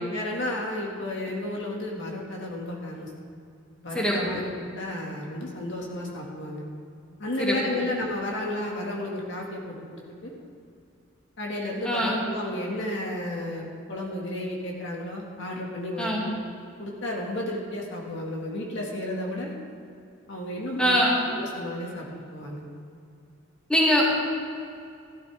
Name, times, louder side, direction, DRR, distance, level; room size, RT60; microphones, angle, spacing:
voice 1, 0.1-3.1 3.8-6.7 7.2-10.3 11.4-16.3 16.8-19.5 20.3-21.0 21.3-22.1 22.3-22.6, left 1 dB, 65° left, -1 dB, 1.9 m, -32 dB
voice 2, 3.9-4.4 7.4-7.8 11.8-12.2 16.0-16.2 20.8-21.2 23.7-24.1, equal, 5° left, -4 dB, 2.2 m, -23 dB
14.5 x 12.5 x 3.5 m, 2.5 s
head